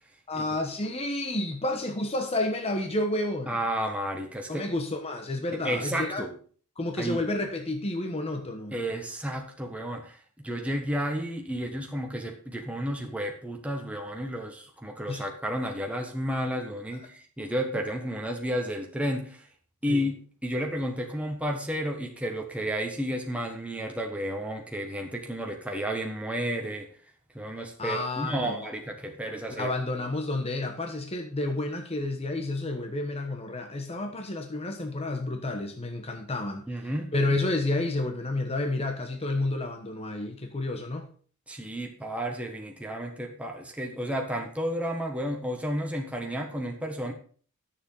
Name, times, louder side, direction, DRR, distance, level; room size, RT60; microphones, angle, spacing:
voice 1, 0.3-3.6 4.5-6.2 6.8-8.8 15.1-15.3 19.9-20.1 27.8-28.7 29.6-36.7 37.1-41.1, left 2 dB, 30° left, 1.1 m, -30 dB
voice 2, 3.5-4.7 5.5-6.4 7.0-7.2 8.7-19.5 19.8-26.9 27.3-29.7 36.7-37.1 41.5-47.1, equal, 5° right, 1.3 m, -32 dB
10.5 x 7.0 x 5.4 m
head